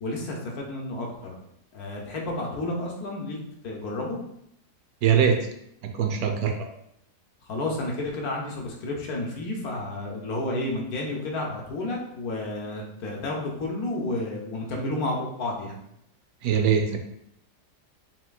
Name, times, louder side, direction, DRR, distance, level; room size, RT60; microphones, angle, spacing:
voice 1, 0.0-1.4 1.7-3.4 3.6-4.2 7.4-15.8, left 2 dB, 70° left, -1 dB, 1.2 m, -31 dB
voice 2, 5.0-5.5 5.8-6.7 16.4-17.0, right 7 dB, 70° right, 5 dB, 1.0 m, -22 dB
5.7 x 2.9 x 2.3 m, 0.75 s
omnidirectional pair, 1.7 m